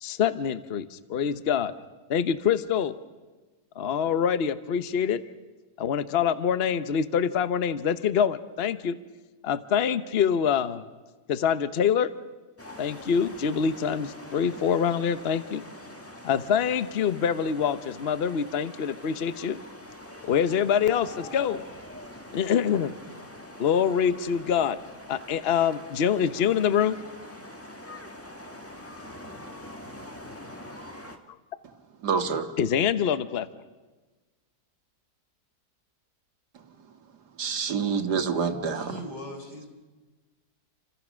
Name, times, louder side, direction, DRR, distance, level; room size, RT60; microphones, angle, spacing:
voice 1, 0.0-1.7 2.1-3.0 3.8-5.2 5.8-9.0 9.4-10.8 11.3-12.1 12.8-15.6 16.2-19.6 20.3-21.6 22.3-22.9 23.6-24.8 25.1-27.0 32.6-33.5, left 8 dB, 45° left, 12 dB, 1.0 m, -25 dB
sound 1, 12.6-31.2, left 1 dB, 10° left, 1.5 m, -44 dB
voice 2, 32.0-32.5 37.4-39.0, right 5 dB, 75° right, 7 dB, 2.1 m, -27 dB
voice 3, 38.7-39.7, left 1 dB, 90° left, 2 dB, 5.0 m, -39 dB
29.0 x 25.0 x 6.3 m, 1.3 s
omnidirectional pair, 1.7 m